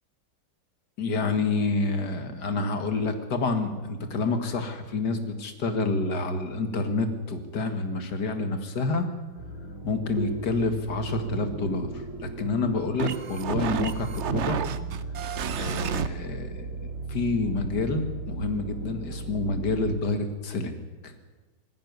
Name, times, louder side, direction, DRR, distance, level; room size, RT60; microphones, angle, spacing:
voice 1, 1.0-9.1 9.8-14.6 15.6-20.8 21.0-21.1, left 3 dB, 55° left, 7 dB, 2.4 m, -28 dB
sound 1, 9.4-20.0, right 3 dB, 30° right, 4.1 m, -37 dB
sound 2, 10.2-16.1, right 7 dB, 55° right, 0.8 m, -33 dB
18.5 x 16.0 x 9.5 m, 1.2 s
omnidirectional pair, 2.1 m